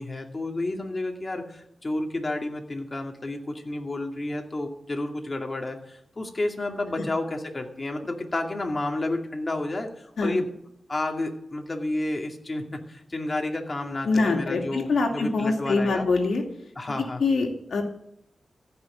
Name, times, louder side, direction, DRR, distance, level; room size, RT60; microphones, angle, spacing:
voice 1, 0.0-10.5 10.9-16.1 16.8-17.2, left 2 dB, 35° left, 2 dB, 2.4 m, -31 dB
voice 2, 14.0-16.4 17.2-17.8, left 3 dB, 90° left, 2 dB, 2.4 m, -24 dB
15.0 x 6.1 x 8.9 m, 0.75 s
cardioid pair, 70°, 0 cm